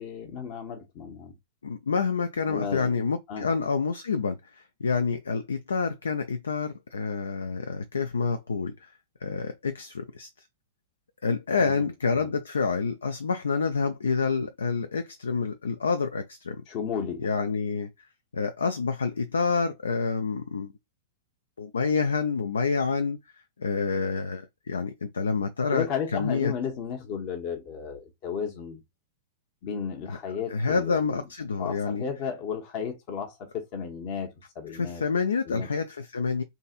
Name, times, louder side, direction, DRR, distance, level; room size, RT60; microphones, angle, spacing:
voice 1, 0.0-1.3 2.5-3.0 3.3-3.5 11.6-11.9 12.1-12.3 16.7-17.3 25.7-28.8 29.6-31.2 31.6-35.0 35.5-35.7, left 7 dB, 45° left, 0.9 m, -34 dB
voice 2, 1.6-8.9 9.2-10.3 11.2-16.6 17.2-17.9 18.3-20.7 21.6-23.2 23.6-25.9 26.1-26.5 30.1-30.2 30.5-32.0 34.7-36.4, left 5 dB, 85° left, 0.4 m, -28 dB
3.8 x 2.8 x 2.4 m
hypercardioid pair, 110°, 0 cm